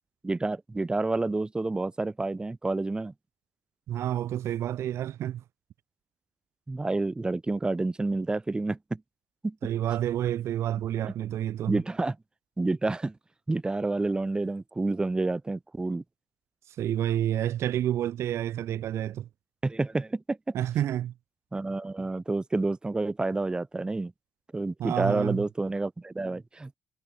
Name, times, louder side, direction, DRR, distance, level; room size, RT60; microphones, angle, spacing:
voice 1, 0.2-3.1 6.7-9.0 9.4-9.6 11.0-11.1 11.7-12.2 12.6-13.2 13.5-16.0 19.6-20.5 21.5-24.1 24.5-26.7, right 2 dB, 20° right, 0.6 m, -29 dB
voice 2, 3.9-5.4 9.6-11.8 16.7-19.3 20.5-21.1 24.8-25.4, right 11 dB, 75° right, 0.4 m, -29 dB
cardioid pair, 85°, 5 cm